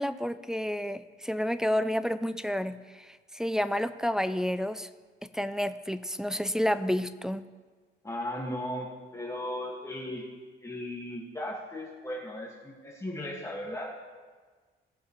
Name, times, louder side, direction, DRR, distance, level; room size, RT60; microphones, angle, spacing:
voice 1, 0.0-4.9 5.2-7.4, equal, 5° right, 11 dB, 0.4 m, -30 dB
voice 2, 8.0-8.9 9.1-10.2 10.6-13.9, left 1 dB, 15° left, -5 dB, 1.8 m, -36 dB
17.5 x 6.4 x 3.1 m, 1.5 s
cardioid pair, 90°, 20 cm